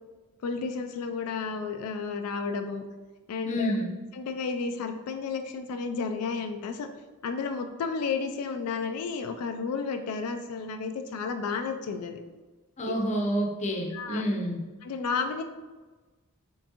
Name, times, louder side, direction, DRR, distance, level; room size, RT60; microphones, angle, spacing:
voice 1, 0.4-2.8 3.3-3.7 4.1-6.9 7.2-12.2 12.9-13.0 13.9-14.2 14.8-15.4, left 5 dB, 85° left, 6 dB, 0.3 m, -32 dB
voice 2, 3.5-3.9 12.8-14.6, equal, 35° left, 1 dB, 0.6 m, -28 dB
4.6 x 3.5 x 2.8 m, 1.2 s
head